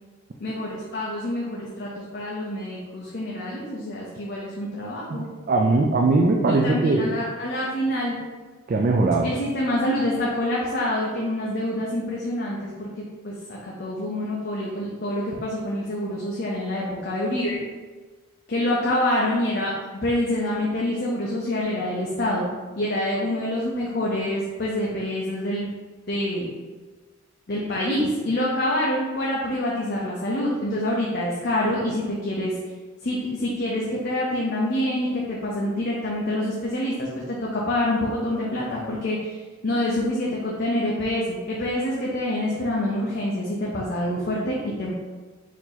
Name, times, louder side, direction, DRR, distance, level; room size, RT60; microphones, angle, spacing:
voice 1, 0.4-5.2 6.4-8.2 9.2-17.6 18.5-19.7 20.0-25.7 26.1-26.5 27.5-32.5 33.0-44.9, left 1 dB, 50° left, -5 dB, 0.7 m, -26 dB
voice 2, 5.1-7.1 8.7-9.3, right 3 dB, 40° right, 0 dB, 0.3 m, -20 dB
4.5 x 2.9 x 4.0 m, 1.4 s
head